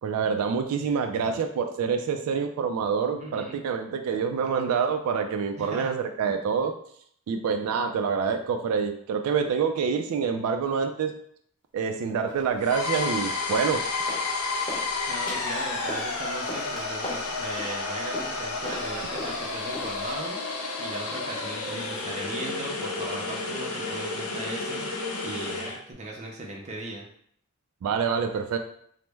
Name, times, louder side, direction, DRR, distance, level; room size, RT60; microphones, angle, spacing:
voice 1, 0.0-6.7 7.3-11.1 11.7-13.8 27.8-28.6, right 6 dB, 85° right, 8 dB, 0.3 m, -26 dB
voice 2, 3.2-3.6 5.6-5.9 15.1-27.1, right 2 dB, 30° right, -1 dB, 0.5 m, -38 dB
sound 1, 12.3-12.5 12.9-13.2 13.5-14.3 14.6-20.2, left 1 dB, 25° left, 0.8 m, -39 dB
sound 2, 12.6-25.8, left 3 dB, 85° left, 0.5 m, -31 dB
3.0 x 2.0 x 3.3 m, 0.64 s
head